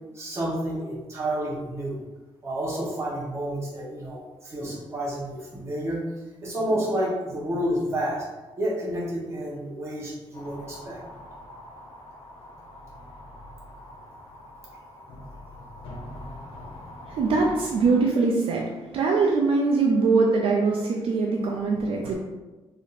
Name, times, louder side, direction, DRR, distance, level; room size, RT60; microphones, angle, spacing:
voice 1, 0.1-2.0 2.4-6.0 6.4-8.2 8.6-11.0, right 1 dB, 30° right, -5 dB, 0.9 m, -30 dB
sound 1, 10.3-18.0, left 1 dB, 65° left, 0.6 m, -43 dB
voice 2, 17.1-18.7 18.9-22.1, right 4 dB, 65° right, -1 dB, 0.4 m, -22 dB
3.4 x 2.7 x 2.4 m, 1.2 s
wide cardioid pair, 180°, 10 cm